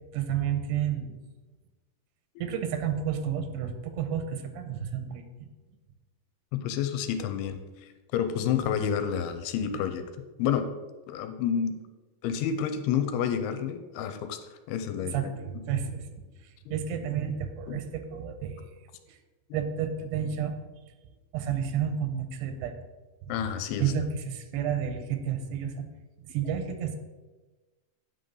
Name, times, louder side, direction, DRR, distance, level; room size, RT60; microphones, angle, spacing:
voice 1, 0.1-1.2 2.4-5.2 15.0-16.0 16.7-18.7 19.1-19.2 19.5-20.5 21.3-22.7 23.8-25.8 26.2-27.0, right 8 dB, 85° right, 8 dB, 2.8 m, -31 dB
voice 2, 6.5-10.1 10.4-10.7 11.1-11.8 12.2-14.4 14.7-15.3 16.7-16.8 17.7-17.8 23.3-23.9, left 8 dB, 90° left, 9 dB, 2.6 m, -29 dB
9.0 x 3.9 x 6.8 m, 1.2 s
omnidirectional pair, 4.6 m